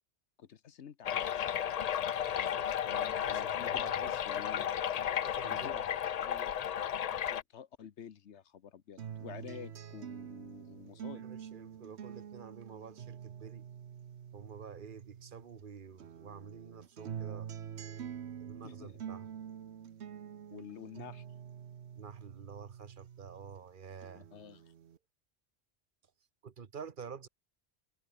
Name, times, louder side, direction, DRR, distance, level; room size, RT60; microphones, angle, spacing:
voice 1, 0.4-1.6 2.8-4.7 5.5-6.5 7.3-11.2 18.6-18.9 20.5-21.2 24.1-24.6, left 8 dB, 80° left, 1.3 m, -49 dB
sound 1, 1.0-7.4, left 9 dB, 55° left, 0.4 m, -33 dB
voice 2, 2.3-4.0 5.2-5.8 11.1-13.7 14.3-17.5 18.4-19.3 21.9-24.3 26.4-27.3, right 6 dB, 50° right, 1.2 m, -49 dB
sound 2, 9.0-15.6 16.0-23.6 24.0-25.0, right 8 dB, 75° right, 1.2 m, -46 dB
omnidirectional pair, 1.1 m